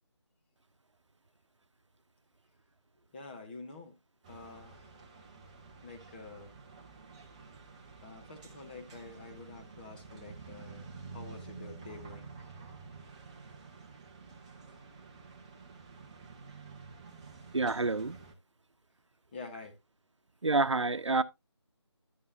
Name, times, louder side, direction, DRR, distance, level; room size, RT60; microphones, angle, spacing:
voice 1, 3.1-3.9 4.3-5.0 5.8-6.5 8.0-12.3 19.3-19.8, left 3 dB, 20° left, 1.1 m, -48 dB
sound 1, 4.2-18.3, right 4 dB, 15° right, 0.7 m, -50 dB
voice 2, 17.5-18.2 20.4-21.2, right 3 dB, 80° right, 0.8 m, -28 dB
11.0 x 6.8 x 2.7 m
figure-of-eight pair, 165°, 15 cm